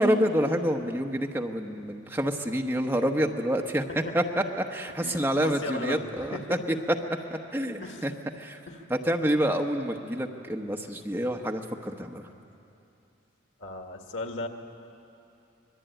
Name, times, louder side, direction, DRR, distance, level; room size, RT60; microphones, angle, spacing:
voice 1, 0.0-3.9 4.1-6.4 7.3-8.1 8.4-8.6 8.9-12.2, equal, 10° right, 2 dB, 1.1 m, -27 dB
voice 2, 5.0-6.6 7.8-8.1 8.7-8.9 13.6-14.5, left 2 dB, 90° left, 4 dB, 2.0 m, -37 dB
25.0 x 20.5 x 9.2 m, 2.8 s
head